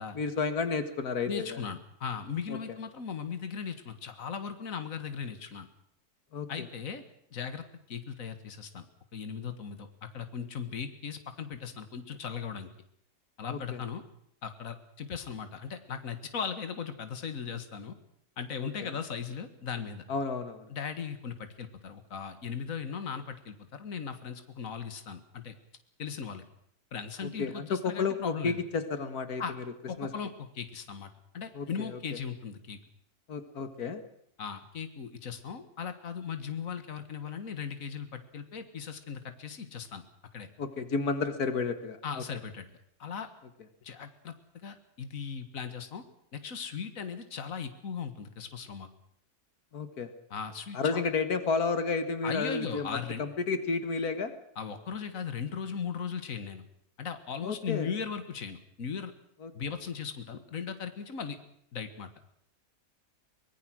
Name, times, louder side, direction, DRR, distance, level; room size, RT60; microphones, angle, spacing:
voice 1, 0.1-1.6 2.5-2.6 6.3-6.5 13.5-13.8 18.6-18.9 20.1-20.7 27.4-29.4 30.0-30.1 31.6-32.0 33.3-34.0 40.6-42.2 49.7-50.1 50.7-54.3 57.4-57.9 59.4-59.5, left 4 dB, 85° left, 10 dB, 2.1 m, -31 dB
voice 2, 1.3-5.7 6.5-7.0 7.3-8.9 9.1-12.7 13.4-14.0 14.4-17.9 18.4-20.0 20.7-25.5 26.0-26.4 26.9-28.6 29.4-29.5 29.9-32.8 34.4-40.0 40.3-40.5 42.0-42.6 43.0-43.3 43.8-44.3 44.6-46.0 46.3-48.9 50.3-51.1 52.2-53.2 54.6-56.6 57.0-59.1 59.5-61.4 61.7-62.1, left 6 dB, 65° left, 9 dB, 2.1 m, -38 dB
24.0 x 20.0 x 6.3 m, 0.70 s
omnidirectional pair, 1.5 m